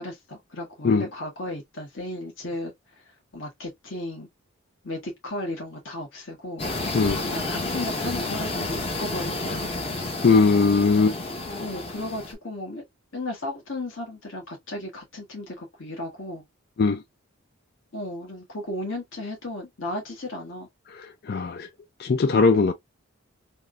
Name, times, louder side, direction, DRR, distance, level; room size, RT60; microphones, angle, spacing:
voice 1, 0.0-2.7 3.3-4.3 4.8-6.6 7.2-9.8 11.6-12.8 13.1-16.4 17.9-20.7, left 1 dB, 65° left, 1.5 m, -34 dB
sound 1, 6.6-12.3, left 2 dB, 30° left, 0.7 m, -30 dB
voice 2, 10.2-11.2 16.8-17.0 21.3-21.7 22.0-22.7, left 4 dB, 50° left, 0.4 m, -19 dB
3.4 x 2.6 x 2.2 m
head